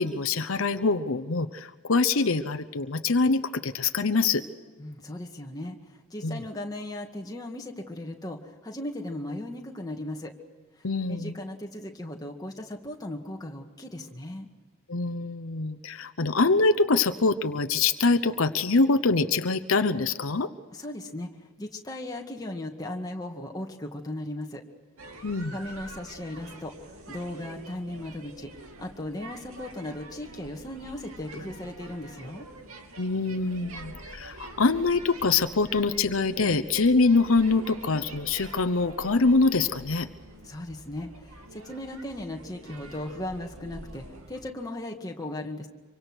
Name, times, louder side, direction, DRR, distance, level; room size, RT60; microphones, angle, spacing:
voice 1, 0.0-4.4 6.2-6.4 10.8-11.4 14.9-20.5 25.2-25.5 33.0-40.1, left 3 dB, 70° left, 11 dB, 0.9 m, -24 dB
voice 2, 4.8-10.3 10.8-14.5 20.7-24.6 25.5-28.5 28.8-32.5 40.4-45.7, left 1 dB, 15° left, 2 dB, 2.0 m, -37 dB
sound 1, 25.0-44.5, right 2 dB, 85° right, 2.8 m, -46 dB
26.0 x 24.5 x 6.3 m, 1.4 s
head